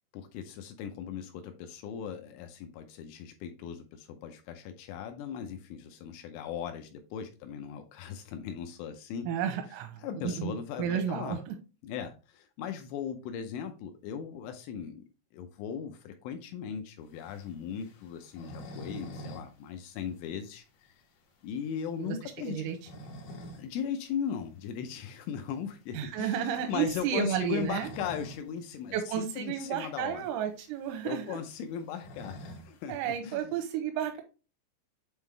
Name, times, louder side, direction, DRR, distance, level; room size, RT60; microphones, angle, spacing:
voice 1, 0.1-9.3 10.0-11.4 11.8-15.0 15.3-20.9 21.4-22.7 23.5-30.3 31.0-33.4, left 8 dB, 80° left, 2.9 m, -38 dB
voice 2, 9.3-11.5 22.0-22.8 23.1-23.2 25.9-27.9 28.9-31.4 32.9-34.2, right 9 dB, 90° right, 3.4 m, -32 dB
sound 1, 17.1-19.5 19.8-19.9 20.3-20.4 20.9-21.0 22.5-23.7 24.1-24.2 25.8-26.0 27.2-28.5 28.8-28.9 29.2-29.3 30.0-30.1 30.3-32.9, equal, 65° left, 2.9 m, -46 dB
8.1 x 3.7 x 3.2 m
omnidirectional pair, 5.9 m